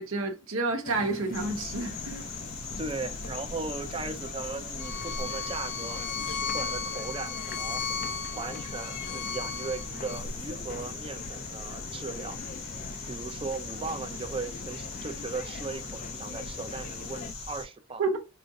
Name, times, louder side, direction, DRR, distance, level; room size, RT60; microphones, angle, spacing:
voice 1, 0.0-2.2 18.0-18.2, right 3 dB, 90° right, 1.0 m, -30 dB
sound 1, 0.8-17.3, left 4 dB, 40° left, 0.3 m, -43 dB
sound 2, 1.3-17.7, left 3 dB, 90° left, 1.3 m, -40 dB
voice 2, 2.8-8.0 8.3-12.4 13.1-18.0, right 3 dB, 25° right, 0.4 m, -37 dB
Bowed string instrument, 4.8-10.2, left 6 dB, 60° left, 0.8 m, -35 dB
3.8 x 2.5 x 3.9 m
head